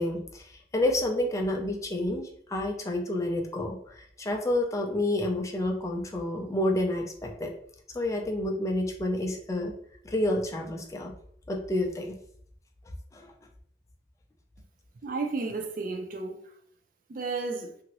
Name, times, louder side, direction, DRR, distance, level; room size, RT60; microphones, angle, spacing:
voice 1, 0.0-7.5 7.9-9.7 10.0-11.1 11.5-12.2 13.1-13.3, left 1 dB, 20° left, 0.4 m, -29 dB
voice 2, 15.0-16.4 17.1-17.7, right 3 dB, 50° right, 0.4 m, -32 dB
2.8 x 2.6 x 3.0 m
head